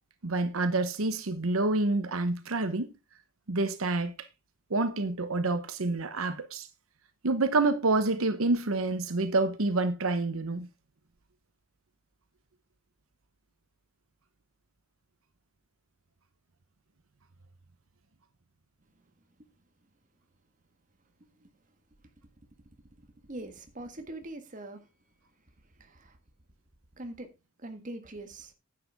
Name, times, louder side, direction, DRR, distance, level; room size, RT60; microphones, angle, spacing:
voice 1, 0.2-2.9 3.5-4.1 4.7-6.7 7.2-10.7, right 2 dB, 80° right, 1.0 m, -28 dB
voice 2, 23.3-24.9 25.8-26.2 27.0-27.3 27.6-28.5, right 1 dB, 40° right, 1.6 m, -42 dB
10.0 x 8.7 x 3.5 m
head